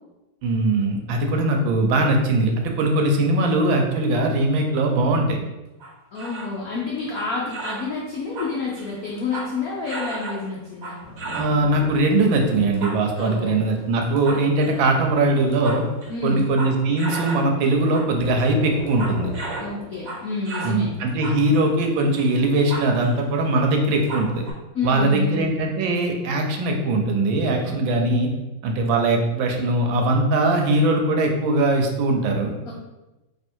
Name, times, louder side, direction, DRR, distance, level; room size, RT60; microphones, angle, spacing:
voice 1, 0.4-5.4 11.3-15.8 16.2-19.3 20.6-24.5 24.8-28.3 28.6-32.5, right 2 dB, 75° right, 3 dB, 1.3 m, -21 dB
sound 1, 5.8-6.6 7.0-7.9 8.2-9.6 9.9-11.6 12.6-13.4 14.0-14.8 15.3-17.5 17.8-18.1 18.4-20.8 21.1-23.2 23.4-23.5 23.8-24.5, right 2 dB, 55° right, 1.0 m, -34 dB
voice 2, 6.1-11.0 13.2-13.6 16.1-16.5 19.6-20.9 24.7-25.6 27.6-28.0 32.7-32.8, left 4 dB, 75° left, -3 dB, 0.8 m, -29 dB
sound 2, 11.0-13.0 14.7-16.4 17.7-20.0 21.3-21.4, left 1 dB, 30° left, 0.6 m, -38 dB
3.5 x 2.8 x 4.3 m, 1.0 s
omnidirectional pair, 2.2 m